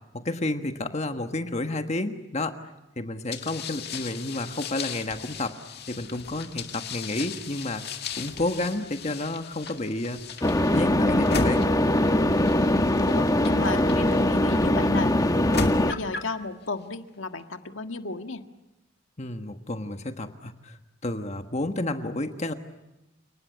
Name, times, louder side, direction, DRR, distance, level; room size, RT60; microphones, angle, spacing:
voice 1, 0.1-2.6 3.0-5.5 5.9-7.8 8.1-10.2 10.7-11.6 19.2-20.8 21.0-22.5, left 2 dB, 35° left, 7 dB, 1.4 m, -30 dB
sound 1, 3.3-14.6 15.2-16.4, left 4 dB, 55° left, 2.0 m, -37 dB
sound 2, 10.4-15.9, left 1 dB, 20° left, 1.1 m, -22 dB
voice 2, 13.1-15.1 15.8-18.4, left 3 dB, 80° left, 7 dB, 1.7 m, -34 dB
29.5 x 20.0 x 9.5 m, 0.96 s
head